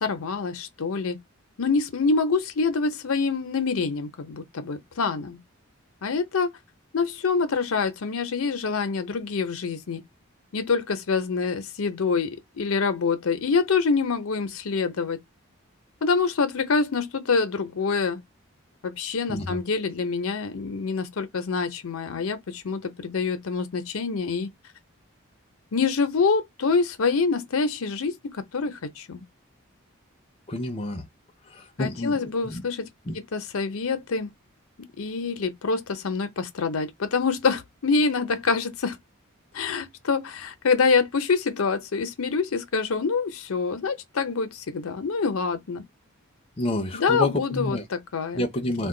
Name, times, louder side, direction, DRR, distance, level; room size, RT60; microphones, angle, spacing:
voice 1, 0.0-1.2 1.6-5.4 6.0-6.5 6.9-10.0 10.5-15.2 16.0-18.2 18.8-24.5 25.7-29.2 31.8-32.9 33.3-34.3 34.8-39.0 39.5-45.8 46.9-48.4, left 4 dB, 80° left, 0.6 m, -26 dB
voice 2, 19.3-19.6 30.5-31.1 31.5-32.6 33.1-33.2 46.6-47.8 48.3-48.9, left 2 dB, 25° left, 0.5 m, -29 dB
2.4 x 2.2 x 3.7 m
head